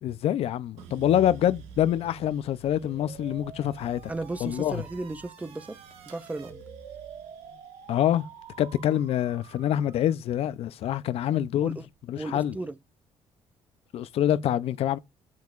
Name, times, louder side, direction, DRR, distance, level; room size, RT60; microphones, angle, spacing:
voice 1, 0.0-4.0 4.4-4.8 7.9-8.3 8.6-11.8 12.1-12.5 13.9-15.0, left 11 dB, 65° left, 0.5 m, -26 dB
sound 1, 0.8-11.0 11.4-12.2, right 6 dB, 90° right, 1.6 m, -50 dB
sound 2, 2.7-10.1, right 7 dB, 65° right, 1.5 m, -48 dB
voice 2, 4.1-5.8 6.1-6.6 11.6-11.9 12.2-12.8, right 2 dB, 15° right, 0.4 m, -35 dB
8.2 x 6.5 x 2.4 m
cardioid pair, 120°, 11 cm